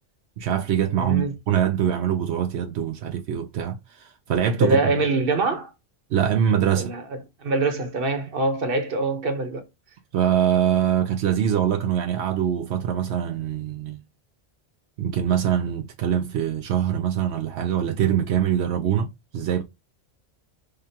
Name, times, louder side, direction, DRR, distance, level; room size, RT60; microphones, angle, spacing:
voice 1, 0.4-4.8 6.1-6.9 10.1-14.0 15.0-19.6, right 9 dB, 85° right, 0.9 m, -23 dB
voice 2, 0.9-1.3 4.6-5.7 6.8-7.0 7.4-9.7, right 2 dB, 60° right, 1.2 m, -24 dB
5.0 x 2.3 x 2.7 m
omnidirectional pair, 1.1 m